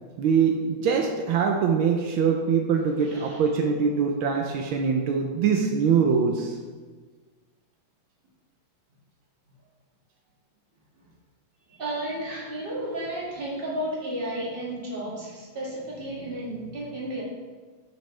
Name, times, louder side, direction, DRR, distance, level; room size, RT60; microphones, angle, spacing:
voice 1, 0.2-6.6, right 6 dB, 80° right, 2 dB, 1.5 m, -23 dB
voice 2, 3.0-3.4 11.7-17.2, right 1 dB, 25° right, -6 dB, 2.3 m, -33 dB
9.2 x 7.2 x 3.3 m, 1.4 s
omnidirectional pair, 2.2 m